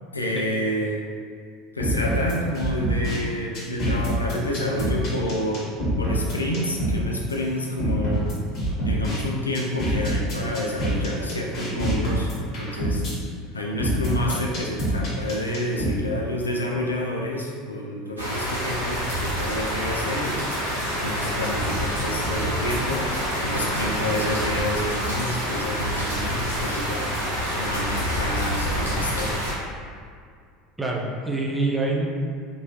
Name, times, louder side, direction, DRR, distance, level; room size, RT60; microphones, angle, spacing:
voice 1, 0.1-1.0 1.7-5.7 6.0-8.4 8.8-13.0 13.5-20.4 21.0-23.1 23.4-27.1 27.5-29.3, left 1 dB, 80° left, -1 dB, 0.4 m, -29 dB
sound 1, 1.8-3.2 3.5-7.0 7.3-7.4 7.8-9.2 9.5-13.1 13.8-15.9, right 1 dB, 50° left, 1.4 m, -25 dB
sound 2, 18.2-29.5, equal, 80° right, 0.7 m, -27 dB
voice 2, 30.8-32.1, right 2 dB, 10° right, -2 dB, 0.5 m, -25 dB
3.5 x 2.7 x 2.9 m, 2.2 s
figure-of-eight pair, 70°, 0 cm